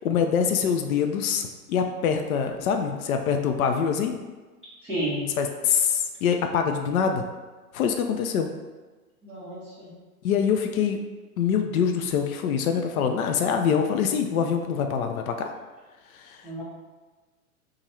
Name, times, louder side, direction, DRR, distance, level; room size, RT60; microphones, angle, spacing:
voice 1, 0.0-4.2 5.4-7.3 7.7-8.5 10.2-11.0 11.4-15.5 16.1-16.5, left 7 dB, 70° left, 5 dB, 0.6 m, -24 dB
voice 2, 4.8-5.2 9.2-9.9 16.4-16.6, right 1 dB, 5° right, -15 dB, 0.4 m, -31 dB
2.9 x 2.5 x 4.2 m, 1.3 s
hypercardioid pair, 135°, 44 cm